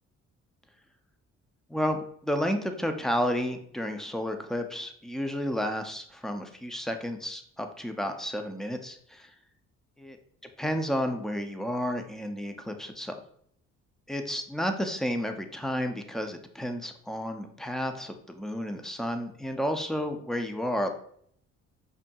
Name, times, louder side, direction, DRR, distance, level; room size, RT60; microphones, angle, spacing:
voice 1, 1.7-9.3 10.0-10.2 10.6-13.2 14.1-20.9, equal, ahead, 6 dB, 0.4 m, -31 dB
5.2 x 2.6 x 2.3 m, 0.64 s
cardioid pair, 90°, 30 cm